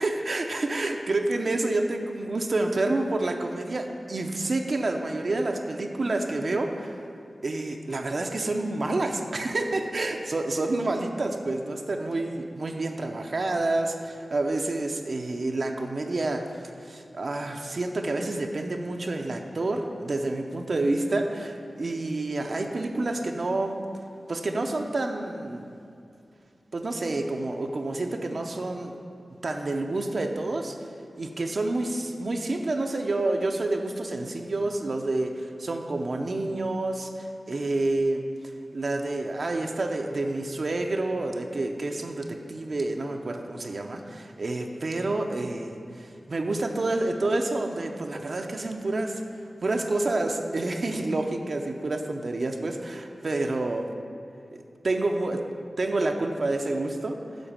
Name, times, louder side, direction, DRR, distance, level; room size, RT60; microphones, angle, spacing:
voice 1, 0.0-7.0 7.4-16.5 16.8-23.8 24.3-25.7 26.7-28.9 29.4-30.9 31.2-38.3 38.7-45.7 46.3-49.2 49.6-53.9 54.5-55.4 55.8-57.2, right 2 dB, 60° right, 3 dB, 0.7 m, -28 dB
10.5 x 3.9 x 7.4 m, 2.5 s
wide cardioid pair, 80°, 0 cm